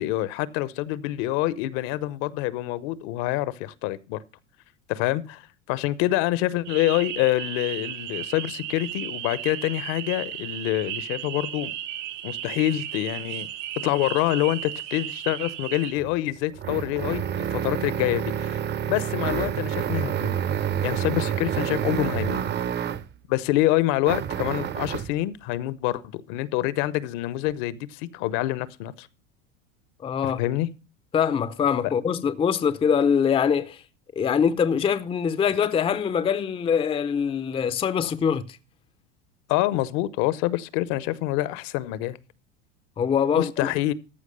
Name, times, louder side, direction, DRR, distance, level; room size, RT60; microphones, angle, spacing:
voice 1, 0.0-4.2 4.9-5.4 5.7-11.7 12.2-13.5 13.8-17.2 17.5-18.6 18.9-20.3 20.8-22.4 23.3-29.1 30.2-30.7 31.8-31.9 39.5-42.2 43.3-43.9, left 16 dB, 60° left, 0.8 m, -26 dB
sound 1, 6.6-15.9, right 12 dB, 75° right, 1.4 m, -35 dB
sound 2, 15.9-23.2 24.0-25.2, right 9 dB, 30° right, 0.7 m, -28 dB
voice 2, 30.0-30.4 31.1-33.8 34.2-38.6 43.0-43.7, left 7 dB, 15° left, 0.5 m, -23 dB
14.0 x 4.8 x 6.6 m
hypercardioid pair, 100°, 36 cm